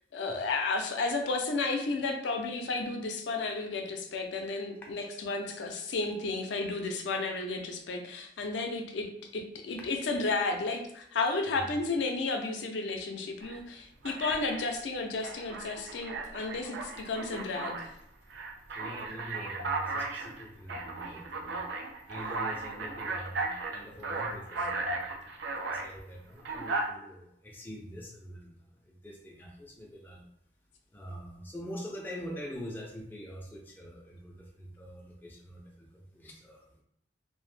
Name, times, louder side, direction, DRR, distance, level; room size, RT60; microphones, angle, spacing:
voice 1, 0.1-17.8, left 3 dB, 80° left, 4 dB, 0.4 m, -32 dB
Alarm, 13.4-13.6 14.0-14.7 15.2-17.9 18.3-25.9 26.4-26.9, right 3 dB, 75° right, 0.4 m, -36 dB
voice 2, 18.8-21.6 22.1-30.3 30.9-36.8, equal, 10° left, -1 dB, 0.3 m, -45 dB
2.0 x 2.0 x 3.1 m, 0.74 s
head